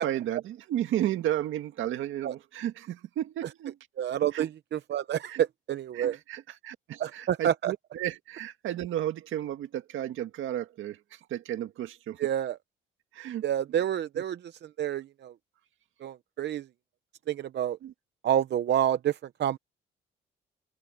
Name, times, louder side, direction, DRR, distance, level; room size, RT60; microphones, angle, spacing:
voice 1, 0.0-3.8 4.3-4.5 5.3-5.4 5.9-12.2 13.1-13.4 14.1-14.2 17.8-17.9, right 12 dB, 80° right, 2.0 m, -33 dB
voice 2, 4.0-6.2 7.0-7.7 12.2-12.6 13.4-15.3 16.0-16.7 17.3-17.8 18.2-19.6, right 10 dB, 60° right, 0.8 m, -28 dB
cardioid pair, 90°, 20 cm